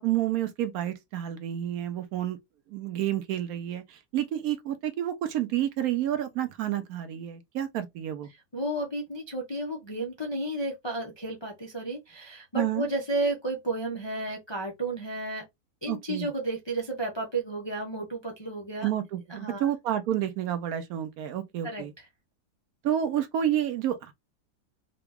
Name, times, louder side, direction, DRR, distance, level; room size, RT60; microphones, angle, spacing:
voice 1, 0.0-2.4 2.7-8.3 12.5-12.9 15.9-16.3 18.8-21.9 22.8-24.1, right 11 dB, 70° right, 0.9 m, -29 dB
voice 2, 8.5-15.5 15.8-18.9 19.3-19.7 21.6-21.9, right 2 dB, 40° left, 0.4 m, -32 dB
3.8 x 2.3 x 3.4 m
omnidirectional pair, 1.8 m